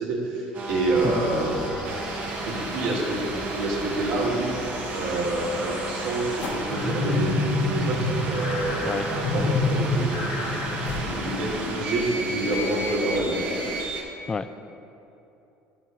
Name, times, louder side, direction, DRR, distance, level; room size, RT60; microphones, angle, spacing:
voice 1, 0.0-1.6 2.4-3.2 3.5-4.5 4.9-10.6 11.1-13.3, right 2 dB, 75° right, -3 dB, 1.9 m, -28 dB
sound 1, 0.5-14.0, right 2 dB, 45° right, 1.4 m, -33 dB
sound 2, 0.7-13.8, left 2 dB, 90° left, 1.6 m, -31 dB
voice 2, 8.8-9.7 10.7-10.8 14.3-14.5, left 4 dB, 20° left, 12 dB, 0.3 m, -29 dB
12.5 x 4.4 x 4.0 m, 2.9 s
cardioid pair, 130°, 4 cm